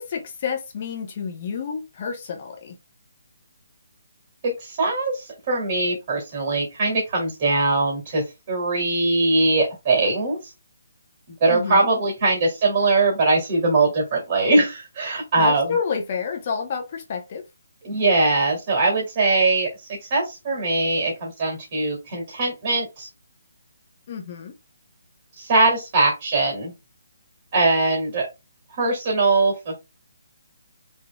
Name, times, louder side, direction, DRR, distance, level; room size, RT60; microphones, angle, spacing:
voice 1, 0.0-2.7 11.5-11.9 15.4-17.4 24.1-24.5, left 6 dB, 30° left, 0.8 m, -29 dB
voice 2, 4.4-10.4 11.4-15.8 17.8-19.7 20.1-23.1 25.4-26.7 27.5-28.3 28.8-29.8, right 3 dB, 30° right, 2.3 m, -21 dB
5.4 x 3.8 x 2.2 m
hypercardioid pair, 170°, 0 cm